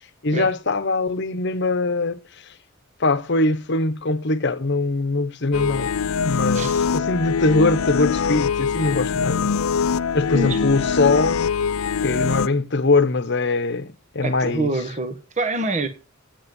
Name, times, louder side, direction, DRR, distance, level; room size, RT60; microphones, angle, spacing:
voice 1, 0.2-2.2 3.0-5.9 6.2-9.5 10.1-11.4 12.0-14.7, left 3 dB, 55° left, 1.0 m, -22 dB
sound 1, 5.5-12.5, left 6 dB, 85° left, 0.5 m, -23 dB
voice 2, 6.5-6.9 10.3-10.6 14.2-15.9, right 2 dB, 35° right, 1.3 m, -26 dB
9.9 x 9.3 x 5.3 m
head